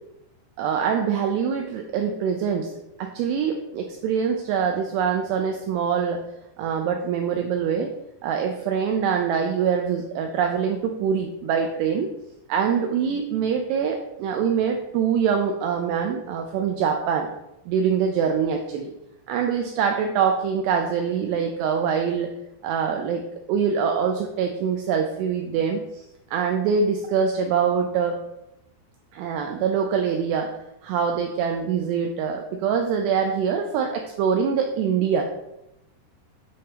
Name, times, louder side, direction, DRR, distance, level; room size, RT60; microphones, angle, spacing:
voice 1, 0.6-2.7 3.0-6.2 6.6-7.9 8.2-12.1 12.5-17.3 17.7-18.9 19.3-22.3 22.6-23.2 23.5-26.0 26.3-28.2 29.1-30.5 30.8-35.3, right 7 dB, 85° right, 3 dB, 2.3 m, -24 dB
7.5 x 5.2 x 2.9 m, 0.88 s
omnidirectional pair, 5.3 m